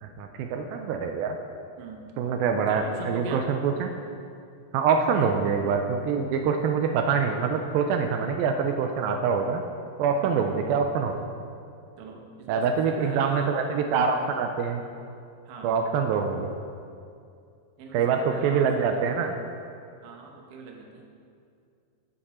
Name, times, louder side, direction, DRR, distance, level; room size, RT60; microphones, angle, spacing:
voice 1, 0.0-1.4 2.2-3.9 4.7-9.6 10.0-11.1 12.5-14.9 15.6-16.6 17.9-19.4, right 6 dB, 85° right, 4 dB, 2.4 m, -25 dB
voice 2, 1.8-2.1 2.7-3.5 5.1-5.3 10.2-10.6 12.0-13.5 15.5-15.7 17.8-19.1 20.0-21.1, right 3 dB, 65° right, 1 dB, 2.4 m, -41 dB
15.0 x 6.7 x 4.3 m, 2.4 s
omnidirectional pair, 4.2 m